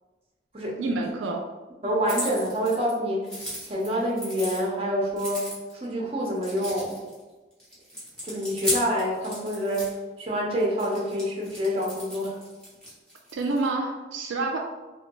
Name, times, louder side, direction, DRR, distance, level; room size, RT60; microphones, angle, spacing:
voice 1, 0.8-1.4 13.3-14.6, right 3 dB, 80° right, 2 dB, 0.3 m, -28 dB
voice 2, 1.8-3.3 3.6-5.5 5.7-7.0 8.2-12.4, equal, 30° right, -3 dB, 0.6 m, -27 dB
sound 1, 2.0-2.9 3.2-4.6 5.1-5.8 6.3-7.2 7.6-9.9 10.8-13.7, equal, 5° left, 0.8 m, -35 dB
3.3 x 2.2 x 2.9 m, 1.2 s
head